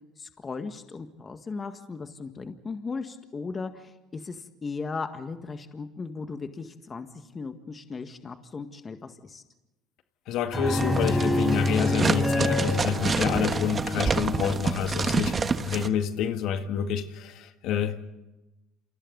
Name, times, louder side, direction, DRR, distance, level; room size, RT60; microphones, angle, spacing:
voice 1, 0.2-9.4, left 4 dB, 25° left, 7 dB, 1.8 m, -37 dB
voice 2, 10.3-18.1, left 8 dB, 65° left, 7 dB, 1.9 m, -28 dB
sound 1, 10.5-14.7, left 1 dB, 10° left, 4.8 m, -27 dB
sound 2, 10.7-15.9, right 5 dB, 30° right, 1.4 m, -28 dB
28.5 x 28.0 x 4.0 m, 1.0 s
supercardioid pair, 95°, 0 cm